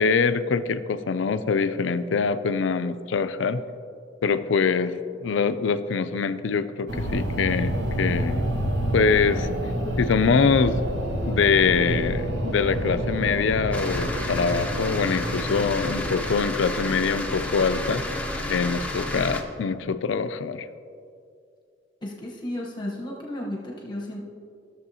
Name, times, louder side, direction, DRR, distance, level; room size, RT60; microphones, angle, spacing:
voice 1, 0.0-3.6 4.2-8.4 8.9-9.5 10.0-10.8 11.3-18.0 18.5-20.7, left 5 dB, 75° left, 11 dB, 0.4 m, -24 dB
sound 1, 6.9-16.3, right 1 dB, 60° right, 1.0 m, -28 dB
sound 2, 13.7-19.4, left 1 dB, 5° left, 0.7 m, -31 dB
voice 2, 22.0-24.2, left 1 dB, 25° left, -2 dB, 1.0 m, -33 dB
14.5 x 6.9 x 2.8 m, 2.4 s
head